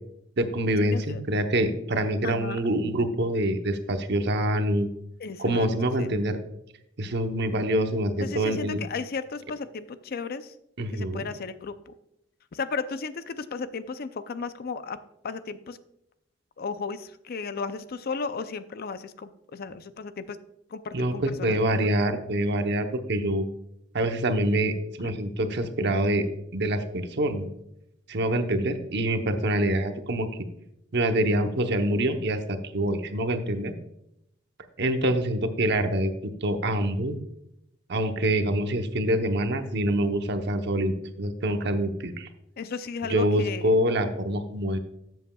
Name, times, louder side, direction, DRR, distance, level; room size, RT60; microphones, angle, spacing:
voice 1, 0.4-4.9 5.4-6.4 7.0-8.8 10.8-11.3 20.9-23.4 23.9-26.3 26.5-27.5 28.1-30.3 30.9-33.7 34.8-37.2 37.9-42.3 43.1-44.8, right 1 dB, 60° right, 7 dB, 0.9 m, -25 dB
voice 2, 0.9-1.2 2.2-2.6 5.2-5.7 6.0-6.1 8.2-10.5 10.9-11.9 12.5-15.0 15.2-15.8 16.6-20.4 20.7-21.6 25.0-25.1 42.6-43.7, left 5 dB, 55° left, 12 dB, 0.5 m, -34 dB
13.0 x 7.6 x 2.3 m, 0.80 s
head